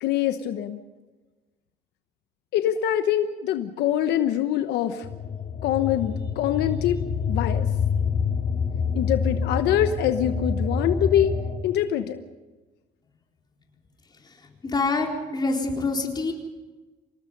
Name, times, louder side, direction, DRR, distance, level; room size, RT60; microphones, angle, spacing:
voice 1, 0.0-0.8 2.5-5.1 5.6-7.7 8.9-11.3 11.6-12.2, left 11 dB, 80° left, 9 dB, 1.1 m, -24 dB
sound 1, 5.0-11.6, left 5 dB, 40° left, 2.7 m, -27 dB
voice 2, 14.6-16.3, left 3 dB, 25° left, 1 dB, 4.1 m, -26 dB
26.0 x 19.0 x 5.4 m, 1.2 s
cardioid pair, 110°, 17 cm